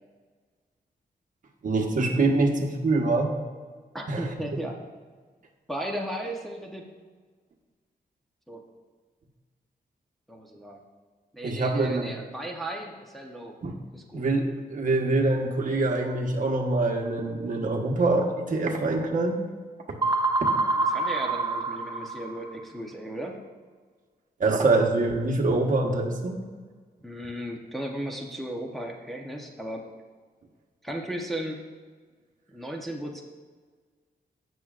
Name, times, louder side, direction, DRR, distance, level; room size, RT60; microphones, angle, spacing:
voice 1, 1.6-3.3 4.1-4.3 11.4-12.1 13.6-13.8 14.1-19.4 19.9-20.0 24.4-26.4, right 2 dB, 55° right, 2 dB, 1.2 m, -25 dB
voice 2, 3.9-4.8 5.7-6.8 8.5-8.6 10.3-10.8 11.3-13.5 13.9-14.2 20.6-23.4 27.0-29.8 30.8-31.6 32.5-33.2, right 1 dB, ahead, -1 dB, 0.8 m, -35 dB
sound 1, 20.0-22.6, right 3 dB, 25° right, 0.5 m, -26 dB
16.0 x 6.3 x 2.5 m, 1.5 s
wide cardioid pair, 155°, 17 cm